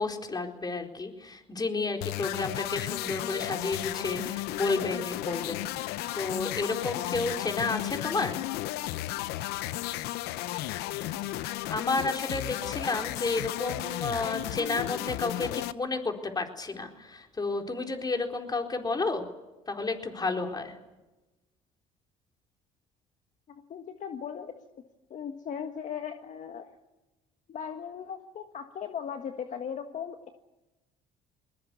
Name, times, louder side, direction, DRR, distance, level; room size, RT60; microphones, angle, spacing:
voice 1, 0.0-8.4 11.7-19.2 19.7-20.7, left 3 dB, 25° left, 3 dB, 4.2 m, -31 dB
sound 1, 2.0-15.7, left 15 dB, 80° left, 0.8 m, -34 dB
voice 2, 23.5-24.5 25.1-26.7 27.5-30.3, left 7 dB, 50° left, 5 dB, 1.6 m, -38 dB
21.5 x 21.5 x 8.5 m, 1.0 s
supercardioid pair, 90°, 16 cm